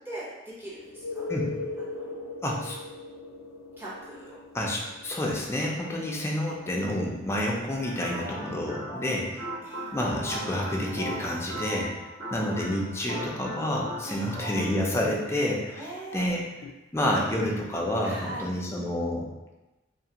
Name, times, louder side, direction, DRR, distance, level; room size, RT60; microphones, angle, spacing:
voice 1, 0.0-1.3 1.9-2.3 3.8-4.4 9.6-10.3 14.0-14.2 15.8-16.3 18.0-18.4, right 1 dB, 10° right, -8 dB, 0.8 m, -41 dB
sound 1, 0.8-12.4 16.6-16.7, left 3 dB, 90° left, 0.3 m, -42 dB
voice 2, 2.4-2.8 4.5-9.5 9.9-11.9 12.3-16.5 16.9-19.3, left 1 dB, 15° left, -2 dB, 0.4 m, -29 dB
sound 2, 7.8-14.8, right 1 dB, 75° right, 1.4 m, -38 dB
2.4 x 2.3 x 2.8 m, 1.1 s
head